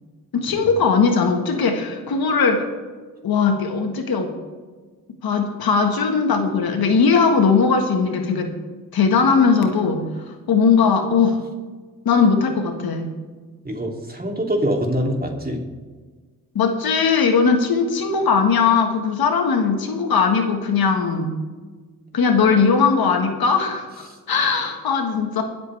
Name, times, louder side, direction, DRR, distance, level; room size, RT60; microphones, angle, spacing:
voice 1, 0.3-2.6 3.2-4.3 5.2-8.5 8.9-11.4 12.0-13.1 16.5-21.3 22.1-25.4, left 5 dB, 80° left, 5 dB, 1.6 m, -19 dB
voice 2, 13.6-15.6 24.1-24.2, equal, 25° right, 1 dB, 2.9 m, -24 dB
21.5 x 7.8 x 3.4 m, 1.4 s
cardioid pair, 55°, 36 cm